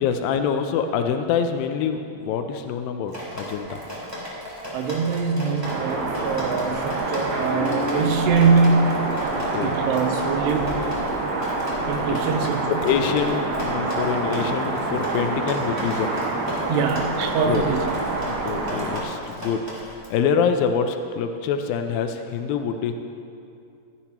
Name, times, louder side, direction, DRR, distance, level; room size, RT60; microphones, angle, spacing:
voice 1, 0.0-2.0 2.3-3.8 9.5-9.7 12.8-16.1 17.5-17.6 18.5-19.6 20.1-22.9, left 7 dB, 85° left, 7 dB, 2.0 m, -25 dB
Drip, 3.1-20.1, equal, 10° right, 1.8 m, -36 dB
voice 2, 4.7-9.0 9.6-10.8 11.9-12.8 16.7-17.8 18.5-18.6, right 5 dB, 90° right, 4 dB, 2.9 m, -23 dB
sound 1, 5.6-19.0, right 2 dB, 70° right, 3.3 m, -27 dB
sound 2, 7.4-12.2, left 1 dB, 55° left, 1.7 m, -34 dB
15.5 x 12.5 x 3.0 m, 2.5 s
omnidirectional pair, 4.7 m